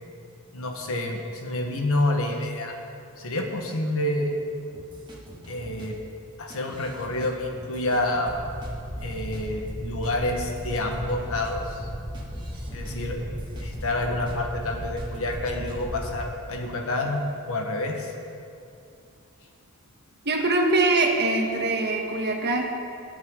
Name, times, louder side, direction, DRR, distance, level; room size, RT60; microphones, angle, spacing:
voice 1, 0.5-2.7 3.2-4.3 5.5-6.0 6.4-8.4 9.0-11.9 12.7-13.2 13.6-17.2 17.5-18.1, left 1 dB, 65° left, 2 dB, 1.5 m, -28 dB
sound 1, 4.7-5.9 6.5-7.3 7.6-8.7 9.0-9.7 10.0-10.1 10.4-14.3 14.6-15.4 15.7-15.9, equal, 20° right, 2.1 m, -45 dB
sound 2, 8.2-16.3, equal, 80° right, 1.7 m, -36 dB
voice 2, 20.2-22.7, right 2 dB, 50° right, 2 dB, 1.4 m, -23 dB
19.5 x 8.1 x 3.9 m, 2.5 s
head